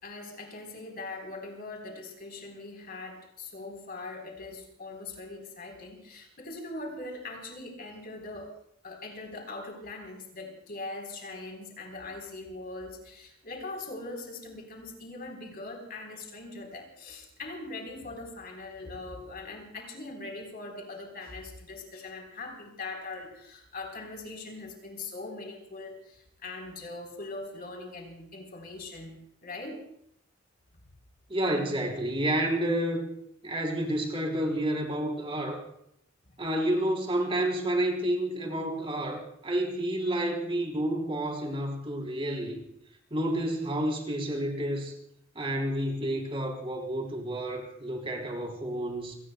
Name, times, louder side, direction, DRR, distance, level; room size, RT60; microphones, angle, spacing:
voice 1, 0.0-8.5 8.8-29.2 29.4-29.8, left 2 dB, 50° left, 2 dB, 4.0 m, -41 dB
voice 2, 31.3-33.0 33.4-35.6 36.4-42.6 43.1-44.9 45.3-49.2, right 1 dB, 30° right, 2 dB, 3.5 m, -30 dB
29.0 x 18.5 x 2.3 m, 0.73 s
head